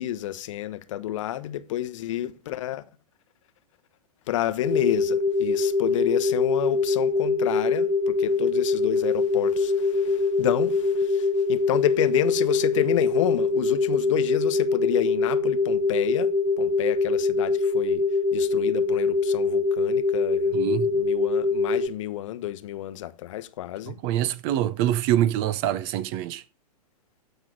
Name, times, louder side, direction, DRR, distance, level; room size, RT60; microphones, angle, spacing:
voice 1, 0.0-2.8 4.3-16.3 16.6-18.0 18.3-24.0, left 13 dB, 50° left, 0.9 m, -29 dB
sound 1, 4.6-21.9, left 3 dB, 5° right, 1.2 m, -23 dB
voice 2, 20.5-20.9 23.9-26.4, right 12 dB, 40° right, 0.7 m, -25 dB
13.5 x 5.5 x 3.7 m
figure-of-eight pair, 105°, 20 cm